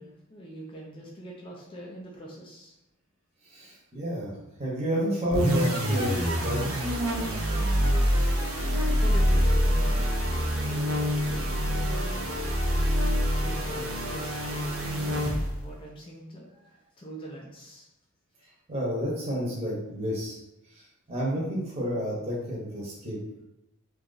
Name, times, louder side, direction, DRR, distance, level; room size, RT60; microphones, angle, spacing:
voice 1, 0.0-2.8 9.0-11.0 11.3-12.9 13.4-17.9 20.7-20.8, right 1 dB, 25° left, -3 dB, 0.4 m, -43 dB
voice 2, 3.5-4.3 4.6-6.9 18.7-20.4 20.7-20.8 21.1-23.2, equal, 30° right, -5 dB, 0.8 m, -30 dB
sound 1, 5.3-15.7, equal, 70° right, 0.6 m, -26 dB
2.8 x 2.5 x 3.8 m, 0.87 s
head